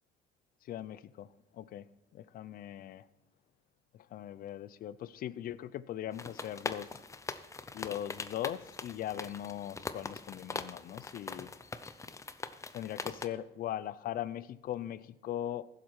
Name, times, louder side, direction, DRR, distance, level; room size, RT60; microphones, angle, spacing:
voice 1, 0.6-3.1 3.9-7.0 7.7-11.5 12.7-15.7, left 11 dB, 60° left, 17 dB, 0.5 m, -40 dB
sound 1, 6.1-13.3, left 3 dB, 20° left, 0.6 m, -42 dB
15.0 x 7.5 x 4.6 m, 0.92 s
cardioid pair, 110°, 17 cm